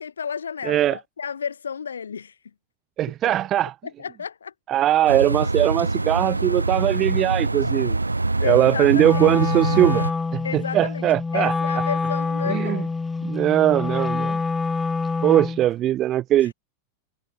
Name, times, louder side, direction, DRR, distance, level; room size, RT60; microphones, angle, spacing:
voice 1, 0.0-2.4 4.0-4.5 8.4-9.4 10.4-12.9 16.4-16.5, left 6 dB, 70° left, 3.6 m, -31 dB
voice 2, 0.6-1.0 3.0-3.7 4.7-8.0 8.4-10.0 10.3-11.5 12.5-12.8 13.2-14.4 15.2-16.5, right 13 dB, 30° right, 1.5 m, -20 dB
sound 1, 5.1-10.1, right 2 dB, 80° right, 3.2 m, -24 dB
Wind instrument woodwind instrument, 8.9-15.7, left 4 dB, 10° left, 0.9 m, -26 dB
figure-of-eight pair, 90°, 0 cm